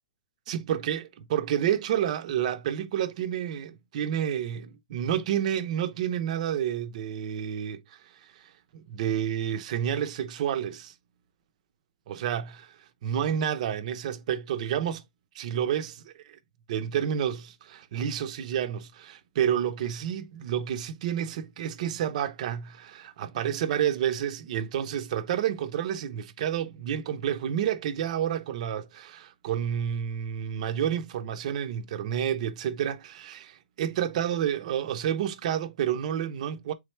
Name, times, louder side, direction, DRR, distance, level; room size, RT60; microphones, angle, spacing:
voice 1, 0.5-8.0 8.7-10.9 12.1-12.7 13.0-15.0 15.3-16.4 16.7-36.7, right 9 dB, 55° right, 0.6 m, -29 dB
3.8 x 3.2 x 3.1 m
hypercardioid pair, 145°, 5 cm